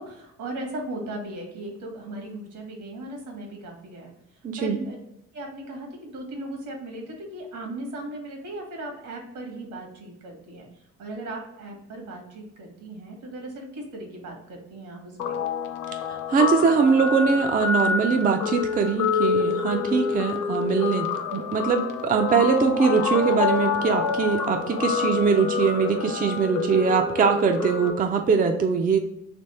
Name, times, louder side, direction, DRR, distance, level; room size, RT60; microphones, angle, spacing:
voice 1, 0.0-4.1 4.6-5.0 5.3-10.7 11.0-15.4, right 1 dB, 80° right, 2 dB, 1.5 m, -37 dB
voice 2, 4.4-4.8 16.1-29.0, right 5 dB, 30° right, 4 dB, 0.4 m, -22 dB
Guitar, 15.2-27.9, left 6 dB, 85° left, 0.6 m, -27 dB
3.4 x 3.0 x 4.2 m, 0.82 s
cardioid pair, 90°, 30 cm